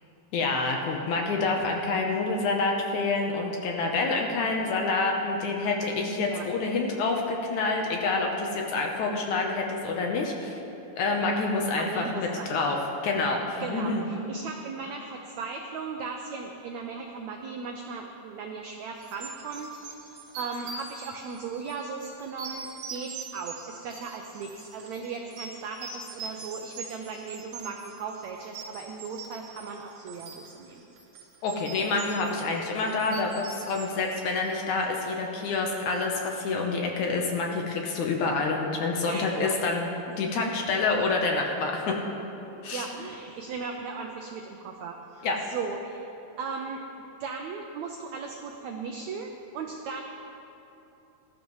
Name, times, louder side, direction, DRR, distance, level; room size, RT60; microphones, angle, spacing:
voice 1, 0.3-10.6 11.0-12.8 13.0-14.0 31.4-39.9 40.2-42.0 42.6-42.9 45.2-45.4, left 3 dB, 70° left, 1 dB, 2.0 m, -27 dB
voice 2, 11.7-12.6 13.6-30.8 39.0-39.6 42.7-46.1 46.4-46.8 47.2-50.0, right 5 dB, 90° right, 2 dB, 1.6 m, -37 dB
sound 1, 19.0-34.8, right 4 dB, 55° right, 1.9 m, -43 dB
19.5 x 12.5 x 3.1 m, 3.0 s
omnidirectional pair, 4.1 m